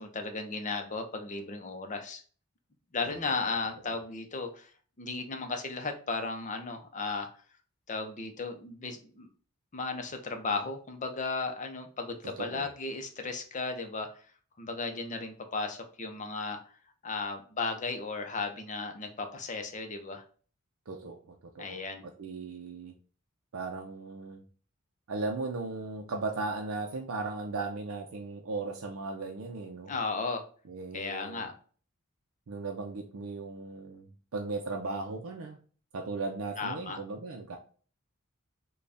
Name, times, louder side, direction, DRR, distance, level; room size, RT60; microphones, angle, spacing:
voice 1, 0.0-2.2 2.9-4.7 5.0-7.3 7.9-9.3 9.7-14.2 14.6-16.7 17.0-20.2 21.6-22.0 29.9-30.4 30.9-31.5 36.6-37.0, left 4 dB, 35° left, 5 dB, 0.6 m, -35 dB
voice 2, 12.2-12.7 20.9-22.9 23.5-24.4 25.1-29.9 30.7-31.5 32.5-35.6 35.9-37.6, right 3 dB, 70° right, 3 dB, 0.5 m, -37 dB
3.9 x 2.3 x 3.3 m, 0.41 s
head